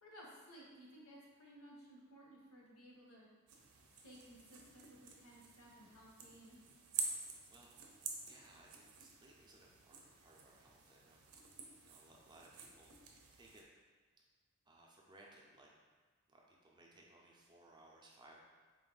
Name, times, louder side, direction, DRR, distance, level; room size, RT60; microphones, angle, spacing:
voice 1, 0.0-3.3 4.0-6.6, equal, 75° left, -3 dB, 1.0 m, -58 dB
sound 1, 3.5-13.6, right 5 dB, 85° right, 0.6 m, -49 dB
voice 2, 7.5-12.9 13.3-13.6 14.2-14.3 14.7-15.7 16.3-18.4, right 1 dB, 20° right, -2 dB, 0.5 m, -63 dB
4.3 x 2.6 x 3.8 m, 1.4 s
head